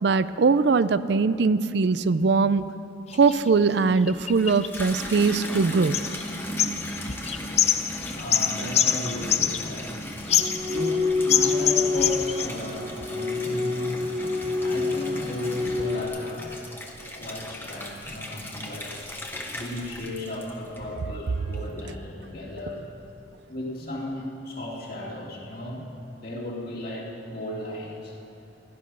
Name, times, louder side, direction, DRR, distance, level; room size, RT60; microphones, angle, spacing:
voice 1, 0.0-2.6 3.2-6.0, right 4 dB, 65° right, 15 dB, 0.4 m, -21 dB
sound 1, 3.1-3.4 4.1-5.6 5.9-6.3 6.6-9.9 10.3-11.0 11.3-12.5, left 9 dB, 35° left, 0.5 m, -25 dB
Water tap faucet / Bathtub (filling or washing), 4.1-21.1 21.5-22.1, equal, 10° left, 1.3 m, -37 dB
voice 2, 6.5-16.7 17.2-18.9 19.5-22.9 23.5-25.8 26.1-28.1, left 1 dB, 55° left, -4 dB, 2.7 m, -36 dB
sound 2, 10.3-16.1, left 3 dB, 30° right, 1.2 m, -27 dB
16.0 x 11.5 x 6.2 m, 2.7 s
head